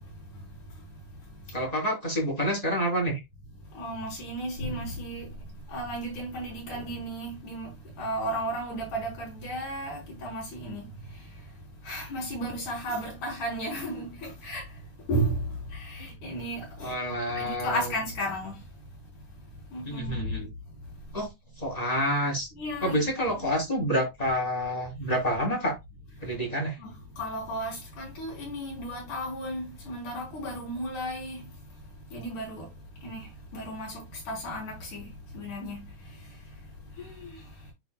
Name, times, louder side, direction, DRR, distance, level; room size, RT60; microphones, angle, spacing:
voice 1, 1.5-3.2 16.8-17.9 19.9-20.5 21.1-21.3 21.6-22.5 22.8-25.7 26.2-26.8, equal, 15° left, 1.9 m, -28 dB
voice 2, 3.7-5.3 5.7-7.7 8.0-10.9 11.8-14.6 15.1-16.9 17.3-18.6 19.7-20.3 22.6-23.1 23.4-23.6 26.8-31.4 32.1-32.7 33.0-35.1 35.3-35.9 37.0-37.4, right 1 dB, 70° left, 5.6 m, -34 dB
11.5 x 3.9 x 2.3 m
omnidirectional pair, 3.6 m